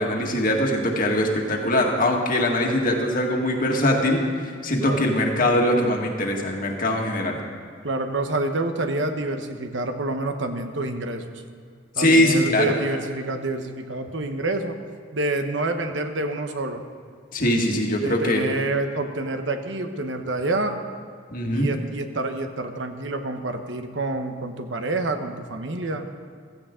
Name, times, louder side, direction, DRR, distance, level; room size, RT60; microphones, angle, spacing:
voice 1, 0.0-7.4 12.0-12.7 17.3-18.4 21.3-21.7, left 1 dB, 45° left, 1 dB, 1.8 m, -22 dB
voice 2, 7.8-11.4 11.9-14.8 15.1-16.8 18.0-20.8 21.5-26.1, right 2 dB, 70° right, 6 dB, 1.0 m, -28 dB
15.5 x 14.5 x 3.8 m, 2.2 s
head